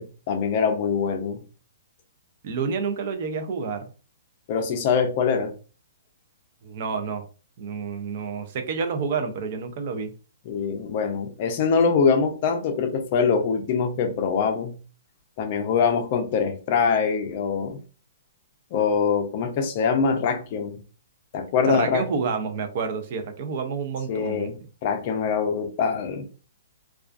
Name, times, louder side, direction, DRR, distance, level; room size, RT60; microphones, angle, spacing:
voice 1, 0.0-1.4 4.5-5.5 10.5-14.8 15.4-17.8 18.7-20.8 21.3-22.0 24.1-26.3, left 5 dB, 35° left, 0.5 m, -24 dB
voice 2, 2.4-3.9 6.6-7.3 7.6-10.1 21.7-24.5, right 5 dB, 40° right, 0.4 m, -29 dB
2.3 x 2.3 x 2.4 m
hypercardioid pair, 170°, 0 cm